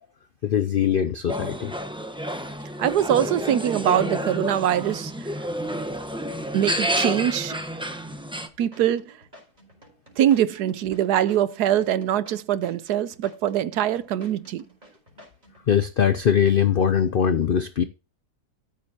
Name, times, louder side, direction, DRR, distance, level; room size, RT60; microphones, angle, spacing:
voice 1, 0.4-1.7 15.7-17.8, left 8 dB, 85° left, 0.4 m, -21 dB
sound 1, 1.3-8.5, equal, 5° right, 0.6 m, -29 dB
voice 2, 2.8-5.4 6.5-7.6 8.6-9.1 10.2-14.7, right 11 dB, 80° right, 1.2 m, -23 dB
sound 2, 7.9-15.7, equal, 25° right, 4.6 m, -52 dB
13.5 x 7.5 x 2.9 m
omnidirectional pair, 1.7 m